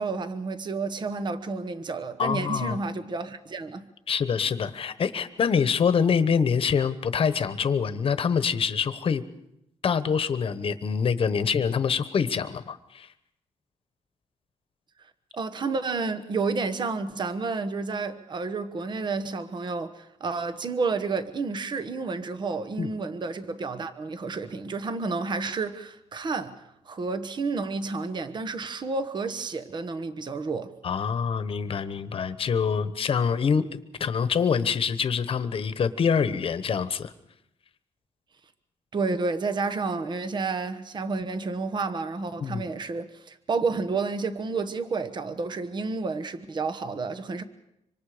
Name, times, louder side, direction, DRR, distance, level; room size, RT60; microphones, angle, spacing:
voice 1, 0.0-3.9 15.3-30.7 38.9-47.4, right 4 dB, 40° right, 1.1 m, -30 dB
voice 2, 2.2-2.8 4.1-9.2 9.8-13.1 22.8-22.9 30.8-37.1 42.4-42.6, left 6 dB, 50° left, 1.1 m, -25 dB
25.5 x 25.5 x 5.0 m
wide cardioid pair, 150°, 12 cm